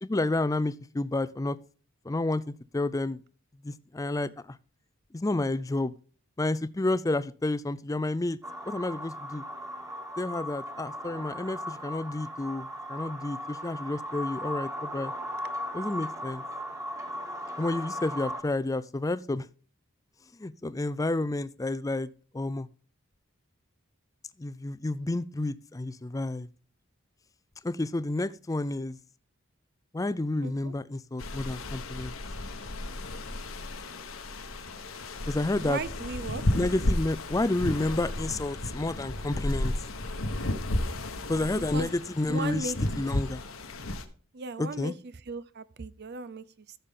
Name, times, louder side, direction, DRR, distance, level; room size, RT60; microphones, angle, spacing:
voice 1, 0.0-1.6 2.1-3.2 3.6-4.3 5.1-5.9 6.4-8.4 8.6-9.4 10.2-15.1 15.7-16.4 17.6-19.5 20.4-22.1 22.3-22.7 24.4-26.5 27.6-29.0 29.9-32.2 35.3-35.8 36.5-39.7 41.3-43.4 44.6-44.9, left 2 dB, 15° left, 0.4 m, -30 dB
sound 1, 8.4-18.4, equal, 15° right, 1.7 m, -37 dB
voice 2, 30.4-30.7 35.6-36.4 41.5-41.9 42.3-42.8 44.3-44.9 45.3-46.4, right 3 dB, 50° right, 0.6 m, -36 dB
sound 2, 31.2-44.0, left 1 dB, 75° left, 1.3 m, -33 dB
14.5 x 6.9 x 3.8 m
head